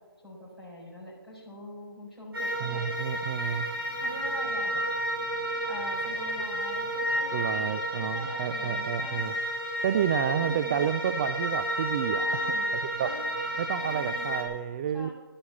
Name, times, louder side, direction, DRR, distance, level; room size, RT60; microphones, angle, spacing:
voice 1, 0.2-2.8 4.0-4.8 5.6-9.3 10.3-10.8 12.1-12.7 13.0-13.2 13.8-14.3 14.9-15.1, equal, 5° right, -9 dB, 5.1 m, -43 dB
sound 1, 2.3-14.4, right 1 dB, 70° right, 4.7 m, -31 dB
voice 2, 2.6-3.7 7.3-9.3 9.8-12.4 13.0-13.1 13.6-15.1, right 9 dB, 20° right, 11 dB, 0.4 m, -30 dB
11.5 x 10.5 x 7.1 m, 1.3 s
figure-of-eight pair, 150°, 13 cm